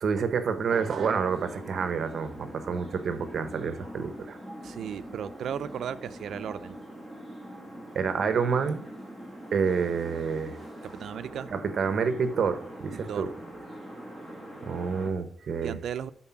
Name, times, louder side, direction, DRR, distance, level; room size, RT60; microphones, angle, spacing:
voice 1, 0.0-4.4 7.9-8.8 9.5-10.6 11.5-13.3 14.6-15.8, right 6 dB, 50° right, 10 dB, 0.8 m, -28 dB
sound 1, 0.7-15.1, right 1 dB, 15° left, 1.8 m, -43 dB
voice 2, 4.6-6.8 10.8-11.5 12.9-13.3 15.6-16.1, right 8 dB, 70° right, 12 dB, 0.4 m, -35 dB
9.6 x 4.1 x 5.8 m, 0.66 s
wide cardioid pair, 170°, 0 cm